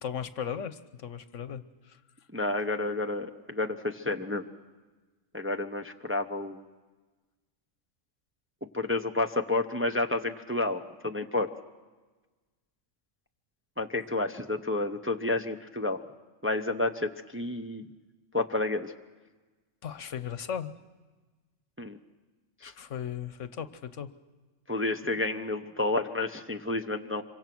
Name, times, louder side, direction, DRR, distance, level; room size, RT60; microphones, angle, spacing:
voice 1, 0.0-1.6 19.8-20.7 22.6-24.1, left 8 dB, 70° left, 12 dB, 1.2 m, -36 dB
voice 2, 2.3-4.4 5.3-6.6 8.7-11.5 13.8-16.0 16.4-17.9 18.3-18.9 21.8-22.0 22.6-22.7 24.7-27.2, left 2 dB, 10° right, 5 dB, 0.7 m, -30 dB
26.5 x 24.0 x 6.1 m, 1.3 s
omnidirectional pair, 1.3 m